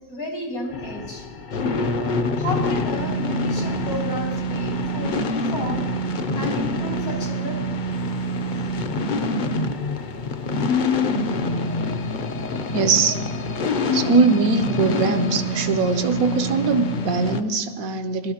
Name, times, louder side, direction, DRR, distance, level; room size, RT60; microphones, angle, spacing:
voice 1, 0.1-1.3 2.4-5.9 6.4-7.6, left 1 dB, 90° left, -2 dB, 3.3 m, -32 dB
sound 1, 0.7-17.4, left 1 dB, 50° left, 0.6 m, -25 dB
voice 2, 12.7-13.2 13.9-18.3, right 3 dB, 80° right, 8 dB, 1.3 m, -21 dB
20.5 x 12.5 x 2.9 m, 1.2 s
omnidirectional pair, 1.5 m